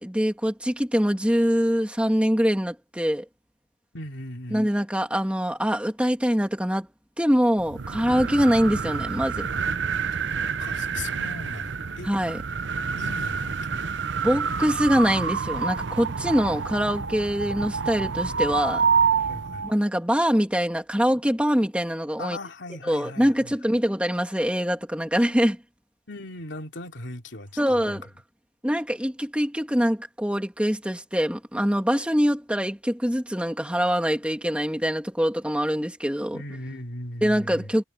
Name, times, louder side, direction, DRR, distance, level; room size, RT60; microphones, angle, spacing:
voice 1, 0.0-3.2 4.5-6.9 7.2-9.5 12.1-12.4 14.2-18.8 19.6-22.4 22.9-25.6 27.6-28.1 28.6-36.4 37.2-37.8, equal, 5° right, 2.3 m, -24 dB
voice 2, 3.9-4.7 10.6-12.1 12.8-13.8 17.4-17.5 19.3-19.7 22.2-23.5 26.1-28.1 36.3-37.7, left 1 dB, 80° left, 2.9 m, -38 dB
sound 1, 7.6-19.7, right 5 dB, 80° right, 0.7 m, -28 dB
head